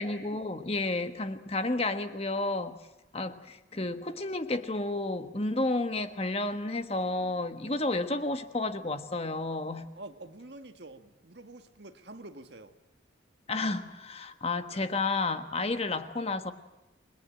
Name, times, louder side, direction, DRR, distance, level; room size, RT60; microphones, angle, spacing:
voice 1, 0.0-2.8 3.1-9.9 13.5-16.5, left 2 dB, 30° left, 9 dB, 1.3 m, -31 dB
voice 2, 9.9-12.8, right 2 dB, 60° right, 7 dB, 1.7 m, -47 dB
27.0 x 21.5 x 9.0 m, 0.97 s
head